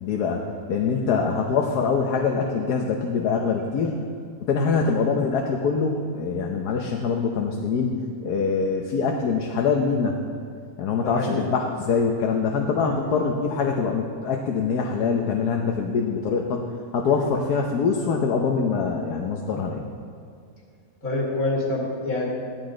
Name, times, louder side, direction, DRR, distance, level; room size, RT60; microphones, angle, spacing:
voice 1, 0.0-3.9 4.5-10.2 10.8-16.7 16.9-19.8, left 5 dB, 80° left, 1 dB, 1.4 m, -24 dB
voice 2, 11.0-11.4 12.8-13.0 17.0-17.3 21.0-22.3, left 2 dB, 60° left, -4 dB, 2.6 m, -28 dB
17.5 x 13.0 x 3.9 m, 2.3 s
omnidirectional pair, 1.7 m